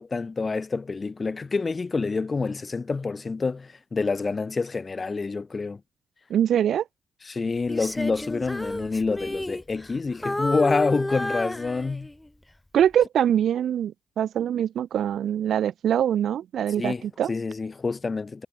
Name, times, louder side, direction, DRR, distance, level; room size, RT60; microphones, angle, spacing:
voice 1, 0.0-5.8 7.3-12.1 16.8-18.5, left 4 dB, 30° left, 2.0 m, -27 dB
voice 2, 6.3-6.8 12.7-17.3, right 10 dB, 65° right, 1.3 m, -23 dB
Female singing, 7.7-10.0 10.2-12.3 12.8-13.0, left 1 dB, 10° left, 3.7 m, -31 dB
cardioid pair, 90°, 0 cm